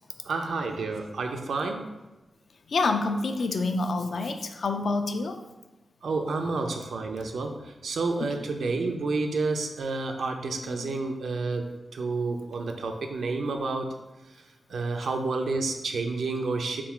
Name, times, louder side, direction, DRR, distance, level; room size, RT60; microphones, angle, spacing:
voice 1, 0.2-1.8 6.0-13.9 14.7-16.8, right 3 dB, 80° right, 4 dB, 0.4 m, -30 dB
voice 2, 2.7-5.4 10.7-11.0, left 3 dB, 65° left, 6 dB, 0.3 m, -27 dB
3.7 x 2.3 x 4.4 m, 1.1 s
wide cardioid pair, 135°, 0 cm